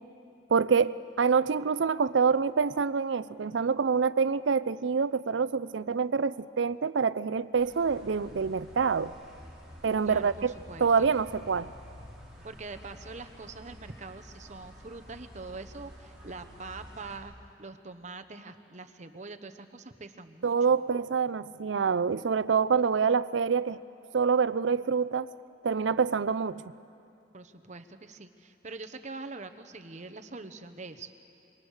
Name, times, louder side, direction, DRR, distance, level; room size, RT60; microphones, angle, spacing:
voice 1, 0.5-9.1 9.8-10.5 10.8-11.7 20.4-23.8 24.1-25.3 25.6-26.6, right 5 dB, 80° right, 17 dB, 0.5 m, -26 dB
sound 1, 7.6-17.2, equal, ahead, 6.2 m, -50 dB
voice 2, 10.0-11.1 12.4-17.3 17.6-20.7 27.3-31.3, right 3 dB, 40° right, 9 dB, 1.0 m, -44 dB
26.0 x 23.5 x 6.5 m, 2.6 s
head